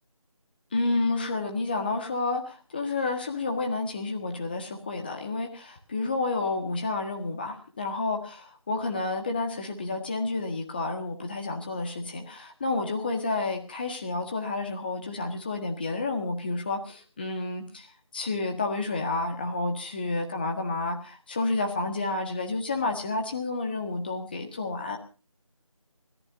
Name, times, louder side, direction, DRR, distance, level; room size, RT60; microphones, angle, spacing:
voice 1, 0.7-25.0, left 3 dB, 15° left, 3 dB, 1.6 m, -30 dB
29.0 x 14.0 x 2.7 m, 0.34 s
figure-of-eight pair, 170°, 18 cm